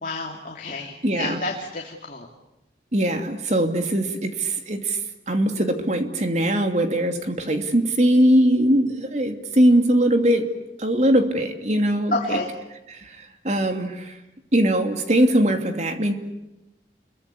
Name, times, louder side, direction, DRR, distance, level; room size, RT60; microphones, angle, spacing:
voice 1, 0.0-2.3 12.1-12.5, left 2 dB, 45° left, 1 dB, 2.7 m, -29 dB
voice 2, 1.0-1.4 2.9-5.0 5.3-10.5 10.8-12.4 12.9-14.2 14.5-16.1, right 1 dB, 40° right, 6 dB, 2.8 m, -21 dB
29.5 x 23.0 x 8.5 m, 0.96 s
head